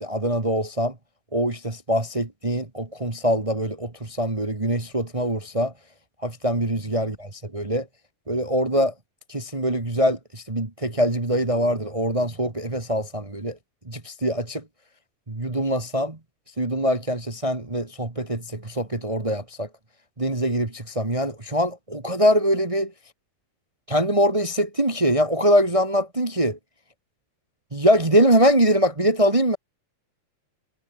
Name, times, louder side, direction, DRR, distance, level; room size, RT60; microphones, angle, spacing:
voice 1, 0.0-0.9 1.3-5.7 6.2-7.9 8.3-8.9 9.3-13.6 13.9-14.6 15.3-16.2 16.6-19.7 20.2-22.9 23.9-26.6 27.7-29.6, equal, 40° right, 0.4 m, -23 dB
omnidirectional pair, 3.7 m